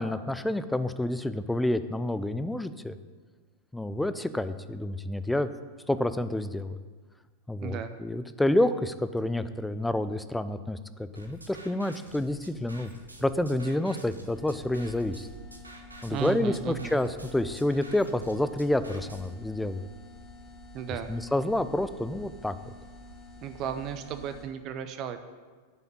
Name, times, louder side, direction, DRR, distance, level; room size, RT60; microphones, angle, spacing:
voice 1, 0.0-3.0 3.7-5.5 5.9-6.8 7.5-12.9 13.2-15.3 16.0-19.9 21.1-22.7, left 1 dB, 5° left, 12 dB, 0.4 m, -29 dB
voice 2, 7.6-7.9 16.1-17.0 20.7-21.1 23.4-25.2, right 9 dB, 35° right, 9 dB, 0.6 m, -34 dB
sound 1, 11.1-19.3, right 1 dB, 85° right, 1.0 m, -49 dB
sound 2, 14.3-24.5, left 2 dB, 30° left, 1.4 m, -49 dB
9.0 x 5.7 x 7.6 m, 1.4 s
figure-of-eight pair, 90°, 0 cm